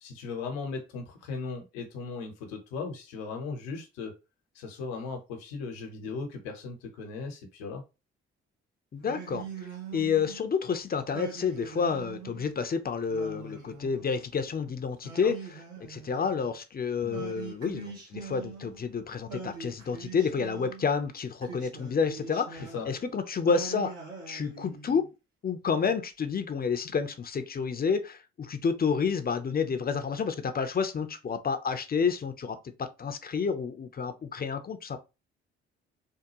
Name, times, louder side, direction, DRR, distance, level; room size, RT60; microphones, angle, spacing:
voice 1, 0.0-4.1 4.5-7.8 15.2-15.3 17.0-17.2 22.7-22.9, left 4 dB, 80° left, 1.0 m, -37 dB
voice 2, 8.9-9.5 9.9-23.9 24.3-25.1 25.4-35.0, left 5 dB, 30° left, 0.6 m, -30 dB
Singing, 9.0-10.5 11.1-12.5 13.1-14.4 15.0-16.5 17.1-18.9 19.3-20.9 21.4-23.1 23.4-25.1, right 5 dB, 75° right, 1.6 m, -43 dB
3.5 x 2.3 x 3.0 m
hypercardioid pair, 50°, 30 cm